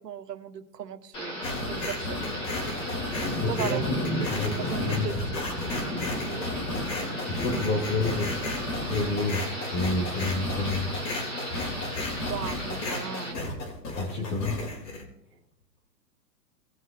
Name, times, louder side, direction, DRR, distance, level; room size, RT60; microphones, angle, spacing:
voice 1, 0.0-2.3 3.5-3.9 4.2-5.7 6.3-6.5 12.2-13.6, right 9 dB, 70° right, 6 dB, 1.6 m, -37 dB
Thunder / Rain, 1.1-13.3, equal, 10° left, 1.3 m, -34 dB
sound 1, 1.4-15.0, left 2 dB, 75° left, 3.8 m, -34 dB
voice 2, 3.4-4.0 4.2-4.5 4.8-5.1 7.3-8.4 8.9-10.9 13.9-14.7, left 2 dB, 40° left, -4 dB, 3.0 m, -29 dB
20.0 x 7.4 x 2.9 m, 0.82 s
hypercardioid pair, 165°, 50 cm